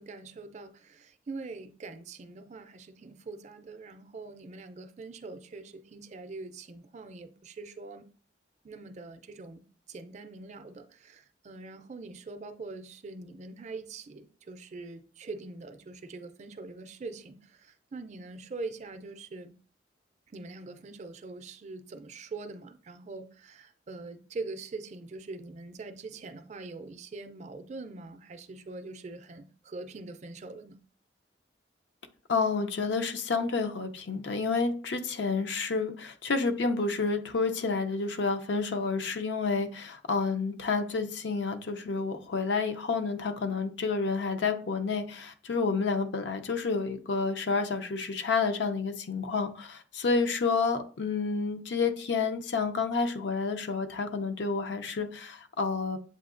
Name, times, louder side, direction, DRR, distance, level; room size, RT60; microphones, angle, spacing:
voice 1, 0.0-8.1 8.6-19.5 20.3-30.8, right 3 dB, 40° right, 0.4 m, -43 dB
voice 2, 32.3-56.0, left 4 dB, 75° left, 0.5 m, -29 dB
7.7 x 2.6 x 2.5 m
head